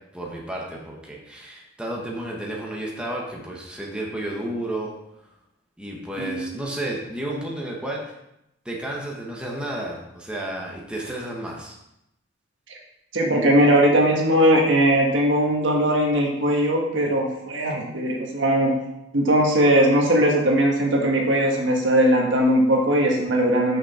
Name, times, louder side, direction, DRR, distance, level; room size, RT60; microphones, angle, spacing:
voice 1, 0.1-4.9 5.8-8.0 8.6-11.8, right 1 dB, 5° right, -2 dB, 1.1 m, -32 dB
voice 2, 6.2-6.5 13.1-18.7 19.1-23.8, right 1 dB, 75° right, 0 dB, 1.5 m, -19 dB
6.1 x 5.9 x 4.2 m, 0.85 s
head